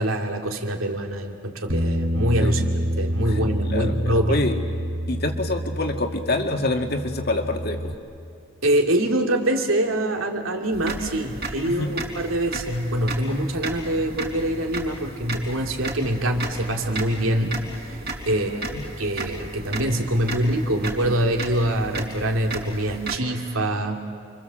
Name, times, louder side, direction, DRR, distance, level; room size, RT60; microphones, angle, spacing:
voice 1, 0.0-2.6 3.0-4.5 8.6-17.6 18.2-18.7 19.0-24.0, right 1 dB, 85° right, 2 dB, 2.6 m, -24 dB
Bass guitar, 1.7-7.9, equal, 65° right, 3.0 m, -27 dB
voice 2, 3.2-4.6 5.1-7.9 11.6-11.9 18.3-18.8, left 2 dB, 50° left, 4 dB, 2.0 m, -27 dB
sound 1, 10.7-23.2, right 2 dB, 50° right, 4.1 m, -34 dB
29.5 x 24.5 x 7.6 m, 2.5 s
head